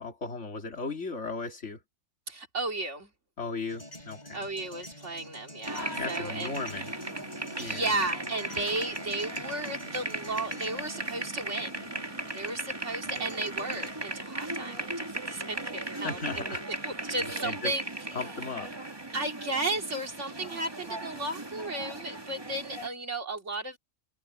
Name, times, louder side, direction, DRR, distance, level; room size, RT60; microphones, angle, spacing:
voice 1, 0.0-1.8 3.4-4.5 6.0-6.9 7.6-7.9 15.9-16.6 17.1-17.7 18.1-18.8, left 4 dB, 65° left, 2.7 m, -36 dB
voice 2, 2.3-3.1 4.3-6.5 7.6-11.8 12.3-16.6 16.8-17.8 19.1-23.8, right 2 dB, 65° right, 3.2 m, -34 dB
sound 1, 3.7-12.8 13.0-13.9, left 1 dB, 35° left, 4.3 m, -48 dB
sound 2, 5.7-22.9, right 2 dB, 20° right, 1.9 m, -37 dB
omnidirectional pair, 1.3 m